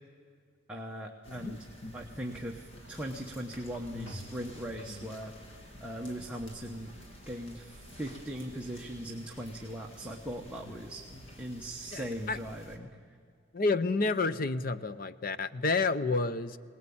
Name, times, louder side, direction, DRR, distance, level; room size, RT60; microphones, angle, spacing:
voice 1, 0.7-1.6 1.9-5.3 5.8-6.9 7.3-11.0 11.4-12.9, equal, 5° right, -1 dB, 1.1 m, -39 dB
sound 1, 1.2-12.8, left 1 dB, 70° left, 2.7 m, -49 dB
voice 2, 11.9-12.4 13.5-16.6, left 3 dB, 45° left, 13 dB, 0.6 m, -30 dB
23.0 x 19.5 x 8.6 m, 2.1 s
head